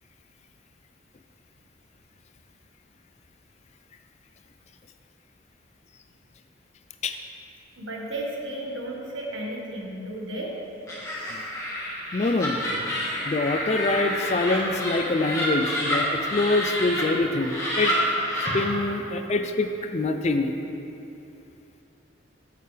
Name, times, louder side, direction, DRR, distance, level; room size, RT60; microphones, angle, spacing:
voice 1, 7.8-10.5, right 1 dB, 75° right, -2 dB, 1.6 m, -33 dB
Laughter, 10.9-17.0 17.4-18.6, left 1 dB, 15° left, 1.7 m, -29 dB
voice 2, 12.1-12.6 13.3-17.9 18.5-20.5, left 2 dB, 35° left, 7 dB, 0.4 m, -25 dB
14.0 x 6.7 x 3.4 m, 2.9 s
head